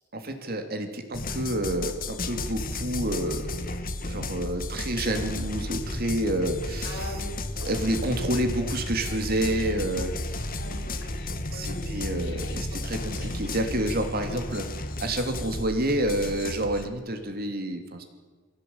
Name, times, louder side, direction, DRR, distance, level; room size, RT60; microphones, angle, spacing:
voice 1, 0.1-3.6 4.0-7.1 7.6-10.4 11.5-14.6 15.0-18.0, right 1 dB, 50° right, 5 dB, 3.1 m, -29 dB
sound 1, 1.1-16.8, left 2 dB, 45° left, 1.6 m, -33 dB
voice 2, 6.8-7.7 10.6-12.9 13.2-13.4 14.2-14.4 15.4-15.5, left 1 dB, 70° left, 2 dB, 6.0 m, -42 dB
23.5 x 16.5 x 8.8 m, 1.5 s
head